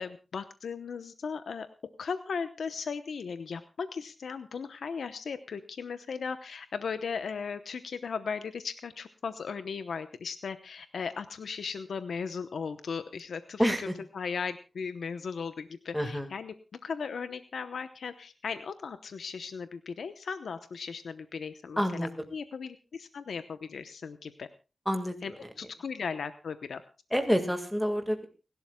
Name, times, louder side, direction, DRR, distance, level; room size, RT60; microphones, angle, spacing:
voice 1, 0.0-1.7 2.0-13.7 14.1-16.5 16.8-24.5 25.2-25.3 25.6-26.8, left 5 dB, 85° left, 10 dB, 0.9 m, -37 dB
voice 2, 13.6-14.0 15.9-16.3 21.8-22.1 24.9-25.5 27.1-28.3, equal, ahead, 7 dB, 1.8 m, -28 dB
30.0 x 12.0 x 2.3 m, 0.32 s
wide cardioid pair, 110°, 0 cm